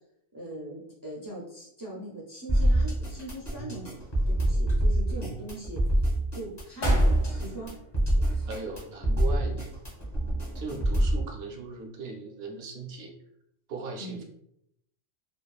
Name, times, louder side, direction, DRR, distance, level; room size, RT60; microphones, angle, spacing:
voice 1, 0.3-5.8 6.3-7.7 8.1-8.5 9.4-9.6 14.0-14.2, right 1 dB, 30° right, -5 dB, 0.4 m, -41 dB
sound 1, 2.5-11.2, right 1 dB, 25° left, 0.9 m, -25 dB
sound 2, 3.1-3.8 4.2-5.1 5.7-6.0 6.5-6.6 6.8-8.7 9.0-9.1, equal, 70° left, 1.1 m, -39 dB
voice 2, 8.5-9.7 10.5-13.1 13.7-14.2, right 3 dB, 65° right, 1 dB, 0.7 m, -38 dB
2.8 x 2.3 x 2.3 m, 0.75 s
omnidirectional pair, 1.2 m